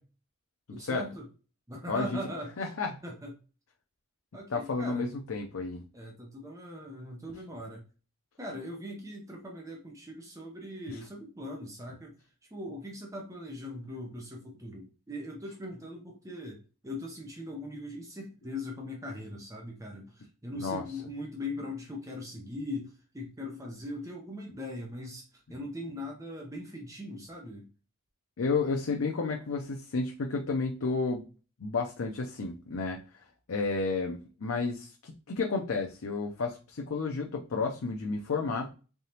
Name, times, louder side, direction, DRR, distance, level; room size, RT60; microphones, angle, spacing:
voice 1, 0.7-1.3 1.7-2.7 3.0-3.3 4.3-5.1 5.9-7.8 8.4-12.1 12.5-27.7, left 1 dB, 15° right, 0 dB, 0.7 m, -40 dB
voice 2, 2.6-2.9 4.5-5.8 20.5-20.8 28.4-31.2 31.6-33.0 33.5-38.7, left 4 dB, 85° left, 1 dB, 0.6 m, -31 dB
3.8 x 3.5 x 2.8 m, 0.35 s
head